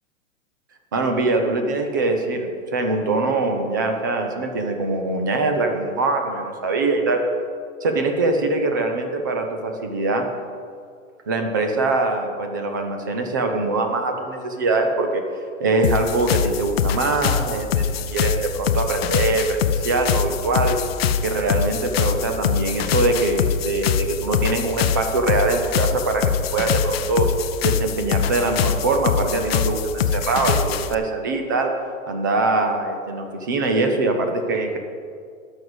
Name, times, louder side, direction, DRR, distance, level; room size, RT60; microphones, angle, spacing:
voice 1, 0.9-7.2 7.8-10.3 11.3-15.2 15.6-20.8 21.2-27.3 27.6-31.7 32.1-34.8, right 3 dB, 15° right, 4 dB, 0.4 m, -23 dB
sound 1, 15.8-30.9, left 8 dB, 50° left, 0.6 m, -23 dB
12.0 x 6.2 x 8.0 m, 2.2 s
hypercardioid pair, 170°, 40 cm